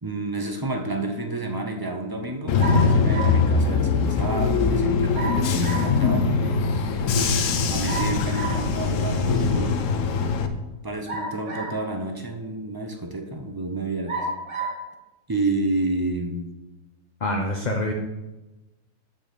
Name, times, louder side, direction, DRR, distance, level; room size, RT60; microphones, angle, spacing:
voice 1, 0.0-7.3 7.7-9.8 10.8-14.2 15.3-16.5, right 2 dB, 20° right, 4 dB, 0.7 m, -30 dB
Bus / Engine, 2.5-10.5, left 4 dB, 65° left, 1.0 m, -22 dB
sound 1, 2.6-3.4 5.1-6.0 7.8-8.7 11.1-11.9 12.7-12.8 14.1-14.8, right 2 dB, 50° right, 2.2 m, -31 dB
voice 2, 17.2-17.9, left 1 dB, 35° left, 2 dB, 0.7 m, -25 dB
10.0 x 4.4 x 6.8 m, 1.0 s
omnidirectional pair, 1.6 m